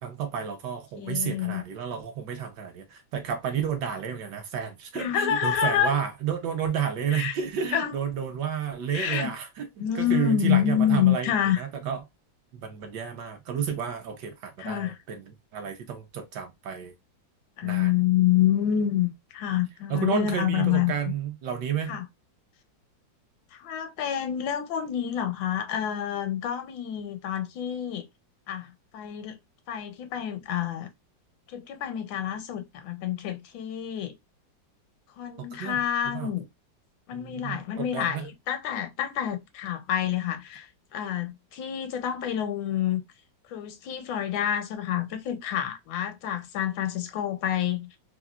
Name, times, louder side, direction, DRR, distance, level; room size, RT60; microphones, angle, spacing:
voice 1, 0.0-9.7 9.9-11.3 11.6-12.0 12.5-16.9 17.6-17.9 19.9-22.0 35.5-35.8 36.0-36.3 37.1-38.2, right 8 dB, 75° right, 1.1 m, -31 dB
voice 2, 1.0-1.6 4.9-6.0 7.1-7.3 7.7-8.0 8.9-9.3 9.8-11.6 14.6-15.0 17.6-20.9 21.9-22.1 23.5-28.1 28.5-29.4 29.7-30.9 31.5-34.2 35.2-36.4 37.1-43.0 43.5-47.9, left 10 dB, 80° left, 1.3 m, -28 dB
3.6 x 2.0 x 2.2 m
omnidirectional pair, 2.1 m